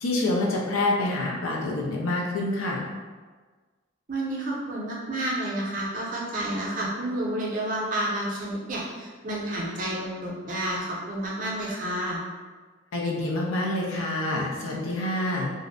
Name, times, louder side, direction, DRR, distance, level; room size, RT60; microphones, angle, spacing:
voice 1, 0.0-2.8 12.9-15.5, left 2 dB, 85° left, -2 dB, 0.5 m, -27 dB
voice 2, 4.1-12.2, right 1 dB, 40° right, -4 dB, 0.5 m, -30 dB
2.5 x 2.0 x 2.5 m, 1.4 s
head